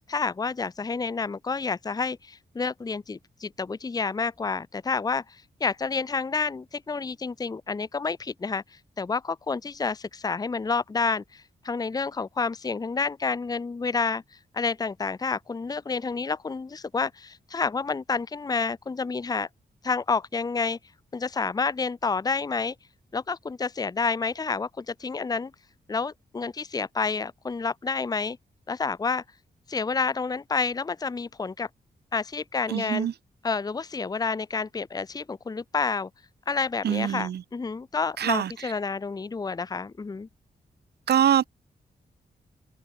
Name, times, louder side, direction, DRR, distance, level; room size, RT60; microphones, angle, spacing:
voice 1, 0.1-8.6 9.0-14.2 14.5-19.5 19.8-20.8 21.1-22.7 23.1-25.5 25.9-28.4 28.7-29.2 29.7-31.7 32.1-33.1 33.4-36.1 36.5-40.3, left 4 dB, 25° left, 0.8 m, -29 dB
voice 2, 32.7-33.1 36.8-37.4 38.2-38.5 41.1-41.4, right 9 dB, 90° right, 1.8 m, -23 dB
wide cardioid pair, 140°, 16 cm